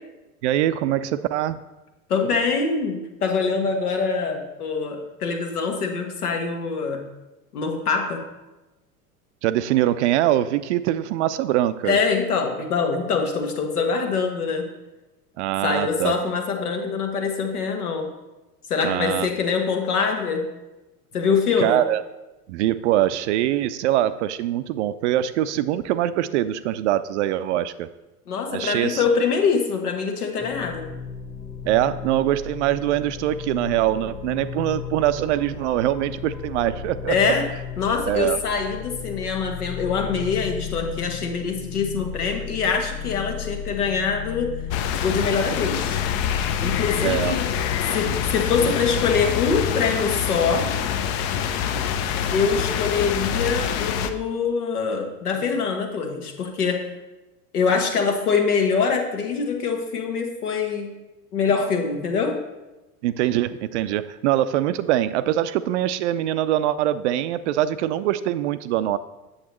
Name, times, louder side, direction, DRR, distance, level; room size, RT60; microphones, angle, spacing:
voice 1, 0.4-1.6 9.4-12.0 15.4-16.1 18.8-19.3 21.6-22.0 22.5-27.9 28.5-29.0 31.7-37.1 38.1-38.4 47.0-47.4 48.0-48.2 63.0-69.0, right 13 dB, 50° right, 14 dB, 0.4 m, -23 dB
voice 2, 2.1-7.0 7.5-8.2 11.8-14.7 15.6-18.1 18.7-20.5 21.1-21.8 28.3-30.9 37.1-37.5 37.8-44.6 45.0-46.0 46.6-47.5 47.9-50.7 52.3-56.9 57.5-60.9 61.3-62.4, left 5 dB, 75° left, 3 dB, 1.5 m, -24 dB
sound 1, 30.4-49.3, left 8 dB, 15° left, 1.3 m, -35 dB
sound 2, 44.7-54.1, left 8 dB, 45° left, 0.7 m, -25 dB
8.7 x 7.2 x 3.1 m, 1.0 s
figure-of-eight pair, 85°, 46 cm